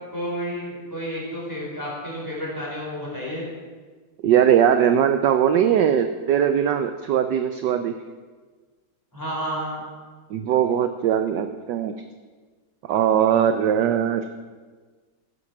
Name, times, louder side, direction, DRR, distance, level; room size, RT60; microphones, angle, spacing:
voice 1, 0.1-3.4 9.1-9.8, equal, 10° left, -5 dB, 4.8 m, -31 dB
voice 2, 4.2-7.9 10.3-11.9 12.9-14.3, right 9 dB, 70° right, 9 dB, 1.1 m, -20 dB
14.0 x 10.0 x 6.0 m, 1.4 s
omnidirectional pair, 2.4 m